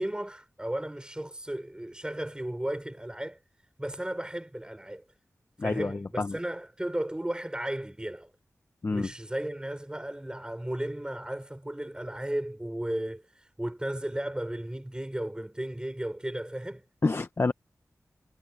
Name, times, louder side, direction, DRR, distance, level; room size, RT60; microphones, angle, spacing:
voice 1, 0.0-3.4 3.8-5.0 5.6-8.3 8.9-16.8, right 1 dB, 15° right, 5.0 m, -35 dB
voice 2, 5.6-6.4 8.8-9.1 17.0-17.5, left 3 dB, 45° left, 0.9 m, -28 dB
cardioid pair, 55°, 6 cm